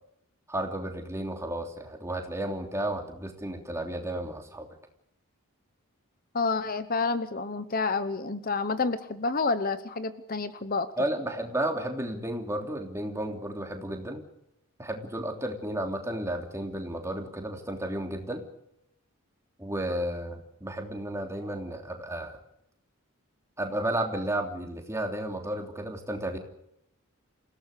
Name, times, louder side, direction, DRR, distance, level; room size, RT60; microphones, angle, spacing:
voice 1, 0.5-4.7 11.0-14.2 14.8-18.4 19.6-22.4 23.6-26.4, right 1 dB, 15° right, 3 dB, 3.1 m, -33 dB
voice 2, 6.3-10.9, left 4 dB, 40° left, 12 dB, 0.9 m, -29 dB
28.0 x 17.0 x 6.7 m, 0.79 s
head